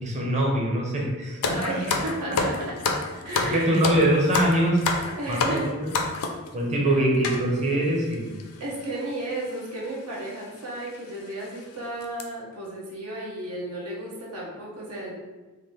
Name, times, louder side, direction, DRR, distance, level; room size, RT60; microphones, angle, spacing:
voice 1, 0.0-1.4 1.7-1.8 3.5-4.8 5.3-5.9 6.5-8.4, right 1 dB, 30° right, -1 dB, 0.8 m, -23 dB
sound 1, 1.4-6.5 7.2-7.4 8.1-8.2 8.4-8.6 9.6-9.8 10.2-10.3 10.9-11.0 11.4-11.6 12.0-12.2, left 3 dB, 85° left, 0.5 m, -27 dB
voice 2, 1.4-2.7 3.2-4.0 5.2-5.7 6.8-7.1 8.6-15.1, right 1 dB, 80° right, -4 dB, 1.0 m, -33 dB
3.9 x 2.6 x 3.2 m, 1.2 s
head